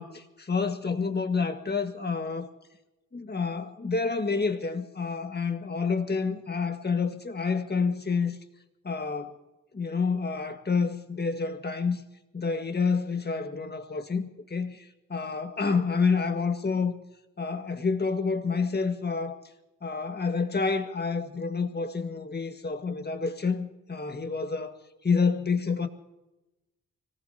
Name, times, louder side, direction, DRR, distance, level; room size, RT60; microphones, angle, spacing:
voice 1, 0.0-2.5 3.1-8.4 8.8-9.4 9.7-12.0 12.3-14.8 15.1-16.9 17.4-19.4 19.8-24.8 25.0-25.9, left 4 dB, 30° left, 1.7 m, -28 dB
25.0 x 18.5 x 2.9 m
cardioid pair, 80°, 32 cm